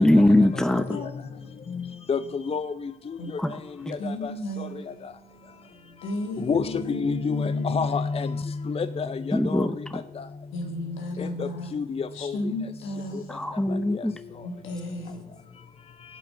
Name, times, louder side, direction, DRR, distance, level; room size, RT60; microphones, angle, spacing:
voice 1, 0.0-1.0 3.4-3.6 3.9-4.0 9.3-10.0 13.3-14.2, left 1 dB, 5° left, 0.9 m, -22 dB
voice 2, 0.9-1.7 3.2-3.4 4.0-7.9 10.5-11.7 12.2-13.4 14.3-15.2, left 1 dB, 85° left, 2.7 m, -35 dB
voice 3, 1.7-2.7 4.0-4.3 6.4-9.7 11.4-12.4 13.7-13.8, left 5 dB, 30° left, 0.6 m, -28 dB
11.0 x 8.8 x 7.1 m
cardioid pair, 90°, 20 cm